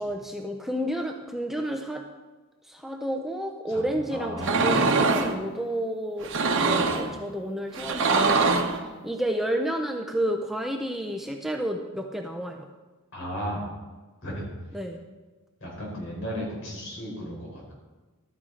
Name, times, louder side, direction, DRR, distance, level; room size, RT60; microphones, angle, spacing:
voice 1, 0.0-2.0 2.7-6.3 6.6-8.6 9.0-12.7 14.7-15.0, equal, ahead, 3 dB, 0.5 m, -30 dB
voice 2, 3.7-5.0 6.6-7.2 13.1-13.7 14.2-14.5 15.6-17.7, equal, 60° left, -3 dB, 4.0 m, -35 dB
sound 1, 4.4-5.3 6.2-7.1 7.7-8.8, right 4 dB, 60° right, 1.0 m, -23 dB
13.0 x 9.3 x 3.8 m, 1.3 s
head